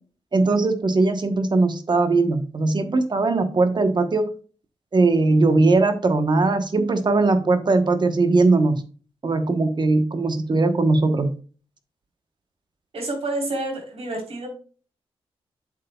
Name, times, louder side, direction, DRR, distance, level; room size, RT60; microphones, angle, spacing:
voice 1, 0.3-4.3 4.9-8.8 9.2-11.3, right 3 dB, 45° right, 8 dB, 1.1 m, -20 dB
voice 2, 12.9-14.5, right 2 dB, 70° right, 1 dB, 3.7 m, -28 dB
7.7 x 7.4 x 2.3 m, 0.38 s
cardioid pair, 80°, 11 cm